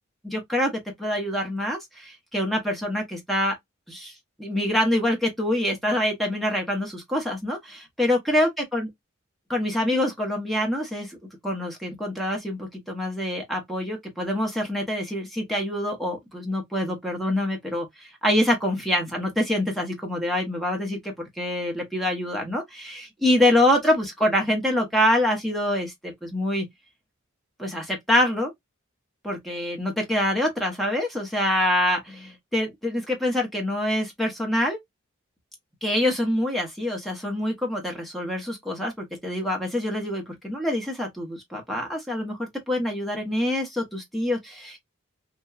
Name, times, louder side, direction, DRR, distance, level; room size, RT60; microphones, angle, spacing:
voice 1, 0.2-0.7 1.0-3.5 3.9-4.1 4.4-8.9 9.5-11.2 11.4-26.7 27.6-28.5 29.2-34.8 35.8-44.8, left 1 dB, ahead, 0.8 m, -25 dB
2.8 x 2.1 x 2.3 m
head